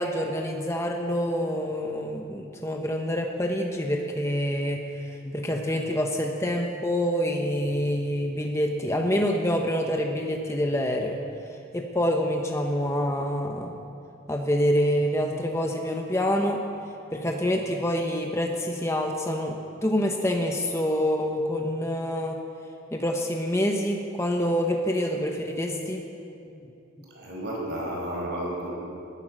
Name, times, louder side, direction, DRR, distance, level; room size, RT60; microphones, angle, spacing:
voice 1, 0.0-11.2 11.7-13.7 14.3-16.6 17.1-19.6 19.8-22.4 22.9-26.0 26.5-26.7, equal, 15° left, 2 dB, 0.9 m, -26 dB
voice 2, 27.1-28.7, right 1 dB, 55° right, -2 dB, 4.7 m, -32 dB
21.0 x 11.0 x 6.3 m, 2.7 s
head